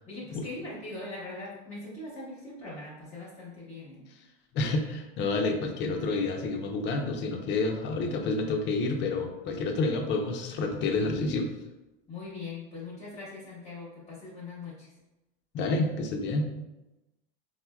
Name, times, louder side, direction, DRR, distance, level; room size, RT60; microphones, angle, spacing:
voice 1, 0.1-4.1 12.1-14.9, left 3 dB, 20° left, -7 dB, 1.0 m, -41 dB
voice 2, 4.5-11.5 15.5-16.5, left 3 dB, 35° left, 3 dB, 0.5 m, -29 dB
4.3 x 2.1 x 2.2 m, 0.99 s
supercardioid pair, 125°, 32 cm